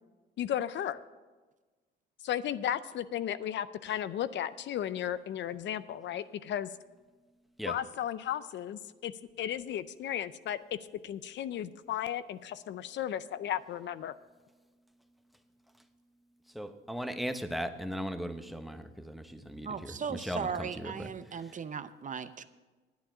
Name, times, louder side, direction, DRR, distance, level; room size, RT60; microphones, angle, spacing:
voice 1, 0.4-1.0 2.2-6.7 7.7-9.1 9.4-10.8 11.0-14.1, left 10 dB, 65° left, 14 dB, 0.5 m, -34 dB
voice 2, 16.5-21.1, equal, ahead, 7 dB, 0.9 m, -38 dB
voice 3, 19.6-22.4, right 6 dB, 40° right, 12 dB, 0.6 m, -37 dB
10.5 x 8.7 x 6.1 m, 1.3 s
cardioid pair, 90°, 20 cm